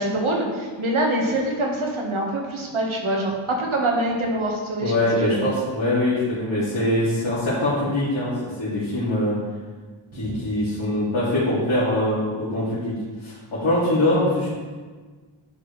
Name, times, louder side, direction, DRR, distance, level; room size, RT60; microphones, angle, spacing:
voice 1, 0.0-4.9 5.3-5.5 10.1-10.4, right 1 dB, 85° right, -1 dB, 1.5 m, -25 dB
voice 2, 4.8-9.4 10.1-12.9 13.2-14.5, left 1 dB, 70° left, -11 dB, 2.5 m, -23 dB
10.5 x 5.1 x 3.2 m, 1.4 s
wide cardioid pair, 105°, 47 cm